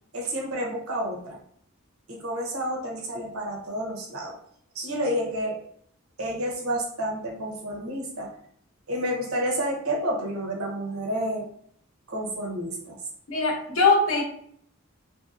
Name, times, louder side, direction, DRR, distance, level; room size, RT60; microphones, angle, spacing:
voice 1, 0.1-1.4 2.1-4.4 4.7-5.6 6.2-8.3 8.9-11.5 12.1-13.0, equal, 80° right, 0 dB, 0.7 m, -30 dB
voice 2, 13.3-14.2, left 3 dB, 70° left, 1 dB, 0.7 m, -21 dB
2.9 x 2.6 x 2.4 m, 0.66 s
head